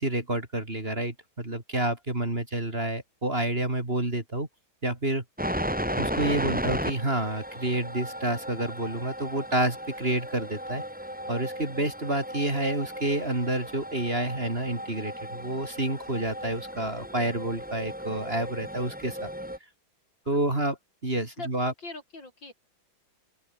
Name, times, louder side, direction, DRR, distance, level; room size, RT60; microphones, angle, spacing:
voice 1, 0.0-4.5 4.8-5.2 6.0-10.8 11.3-19.3 20.3-20.8 21.0-21.7, right 1 dB, 30° right, 3.9 m, -29 dB
sound 1, 5.4-19.6, equal, 5° right, 5.6 m, -35 dB
voice 2, 21.4-22.5, left 2 dB, 65° left, 7.0 m, -42 dB
open air
omnidirectional pair, 2.2 m